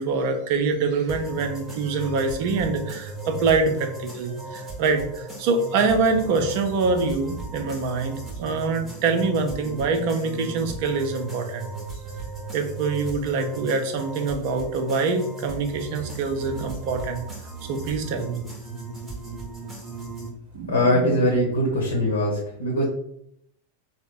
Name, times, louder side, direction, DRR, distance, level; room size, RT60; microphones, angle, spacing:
voice 1, 0.0-11.7 12.5-17.2 17.7-18.4 20.5-21.2, right 4 dB, 45° right, 6 dB, 0.6 m, -25 dB
sound 1, 1.1-20.3, right 3 dB, 10° right, 0.9 m, -37 dB
voice 2, 20.7-22.8, left 1 dB, 70° left, -1 dB, 0.9 m, -22 dB
3.5 x 2.1 x 3.8 m, 0.74 s
figure-of-eight pair, 90°, 0 cm